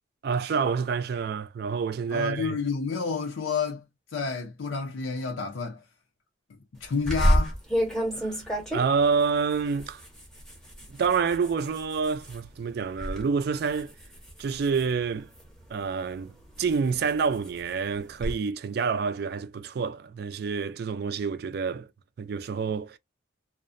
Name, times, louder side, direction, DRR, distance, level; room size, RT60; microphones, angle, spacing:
voice 1, 0.2-2.6 8.2-8.4 8.7-10.0 10.9-13.9 14.4-15.3 15.7-16.3 16.6-21.9 22.2-23.0, right 5 dB, 50° right, 0.3 m, -28 dB
voice 2, 2.1-3.8 4.1-5.8 6.8-7.5, left 5 dB, 85° left, 0.5 m, -29 dB
sound 1, 7.1-12.4 12.8-13.2 13.6-15.6 16.2-18.3, equal, 5° left, 0.7 m, -30 dB
2.4 x 2.0 x 2.4 m
head